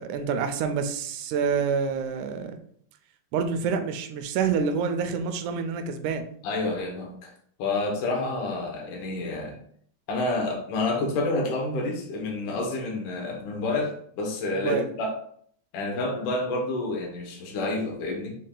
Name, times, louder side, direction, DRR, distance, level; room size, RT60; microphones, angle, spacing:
voice 1, 0.0-2.6 3.3-6.3 14.5-14.8, right 6 dB, 80° right, 7 dB, 1.9 m, -27 dB
voice 2, 6.4-7.3 7.6-9.6 10.1-15.1 15.7-18.4, left 2 dB, 85° left, 0 dB, 2.5 m, -29 dB
6.4 x 2.3 x 3.7 m, 0.62 s
omnidirectional pair, 3.5 m